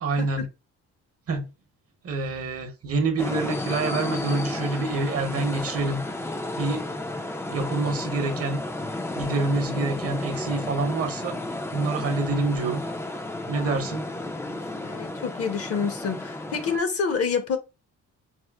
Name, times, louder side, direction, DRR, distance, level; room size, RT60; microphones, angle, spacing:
voice 1, 0.0-0.4 1.3-1.5 2.0-6.0 6.6-6.9 7.5-8.6 9.1-11.4 11.7-12.8 13.5-14.1, right 3 dB, 50° right, 0.8 m, -26 dB
sound 1, 3.2-16.8, left 2 dB, 10° left, 0.3 m, -32 dB
voice 2, 14.4-17.6, left 5 dB, 50° left, 0.7 m, -28 dB
4.2 x 2.0 x 2.2 m
cardioid pair, 90°, 30 cm